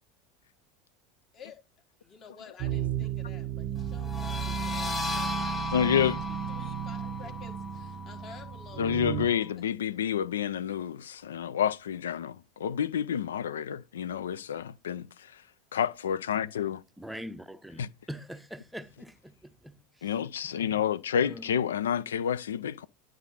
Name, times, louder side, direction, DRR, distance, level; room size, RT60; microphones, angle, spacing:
voice 1, 2.0-9.6, left 6 dB, 40° left, 1.4 m, -51 dB
sound 1, 2.6-9.3, right 9 dB, 45° right, 0.5 m, -34 dB
sound 2, 4.0-9.4, left 2 dB, 20° left, 1.0 m, -37 dB
voice 2, 5.7-6.2 8.8-15.4 15.7-16.8 17.8-17.9 20.0-22.9, left 8 dB, 70° left, 0.3 m, -29 dB
voice 3, 17.0-20.1 20.4-20.8 21.2-21.6, equal, 5° right, 0.6 m, -44 dB
10.5 x 3.8 x 4.1 m
figure-of-eight pair, 75°, 0 cm